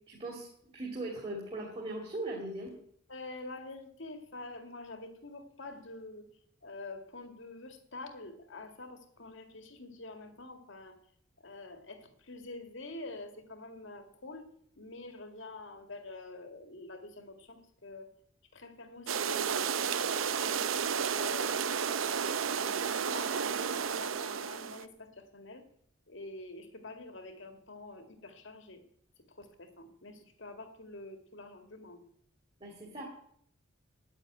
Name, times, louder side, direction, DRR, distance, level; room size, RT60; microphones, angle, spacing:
voice 1, 0.1-0.5 0.7-2.7 32.6-33.1, right 2 dB, 30° right, -2 dB, 2.7 m, -39 dB
voice 2, 3.1-6.3 6.6-11.0 11.4-14.5 14.8-18.1 18.5-19.6 19.9-21.8 22.4-25.6 26.1-28.8 29.3-32.0, left 2 dB, 65° left, 7 dB, 2.1 m, -47 dB
sound 1, 19.1-24.8, right 7 dB, 80° right, 0.7 m, -32 dB
10.0 x 8.9 x 9.2 m, 0.67 s
head